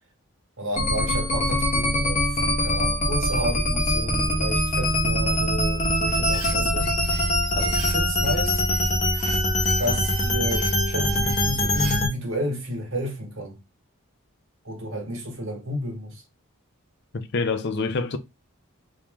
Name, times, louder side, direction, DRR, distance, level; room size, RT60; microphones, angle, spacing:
voice 1, 0.6-6.9 7.5-8.7 9.8-13.6 14.6-16.2, equal, 60° right, 1.4 m, -31 dB
sound 1, 0.8-12.1, left 1 dB, 30° left, 1.2 m, -23 dB
sound 2, 6.2-12.0, right 4 dB, 90° right, 1.2 m, -39 dB
voice 2, 17.1-18.2, left 3 dB, 50° left, 0.5 m, -26 dB
3.1 x 3.0 x 3.5 m
head